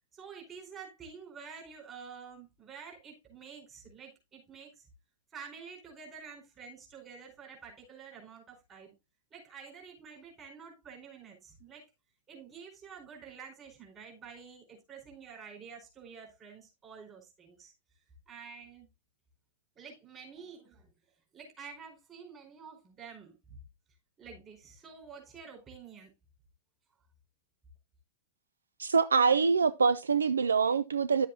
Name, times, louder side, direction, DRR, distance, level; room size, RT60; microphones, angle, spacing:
voice 1, 0.1-4.9 5.3-8.9 9.3-11.9 12.3-17.7 18.3-18.9 19.7-20.9 21.3-23.6 24.2-26.1, right 6 dB, 25° right, 4.6 m, -49 dB
voice 2, 28.8-31.3, right 5 dB, 80° right, 0.4 m, -25 dB
11.0 x 7.6 x 2.6 m
figure-of-eight pair, 100°, 0 cm